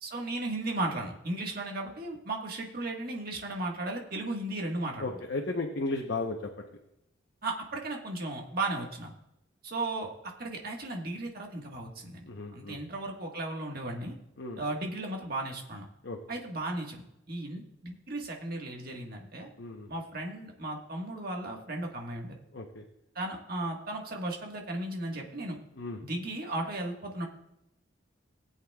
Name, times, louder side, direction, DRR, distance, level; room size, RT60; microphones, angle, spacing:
voice 1, 0.0-5.2 7.4-9.1 9.6-10.1 10.4-14.1 14.6-15.8 16.3-19.5 19.9-22.4 23.1-25.6 26.0-27.3, right 2 dB, 50° right, 1 dB, 1.5 m, -35 dB
voice 2, 5.0-6.4 12.2-12.8 14.4-14.6 16.0-16.2 19.6-19.9 22.5-22.8 25.8-26.0, left 2 dB, 60° left, 1 dB, 0.9 m, -34 dB
18.5 x 8.1 x 2.3 m, 0.85 s
head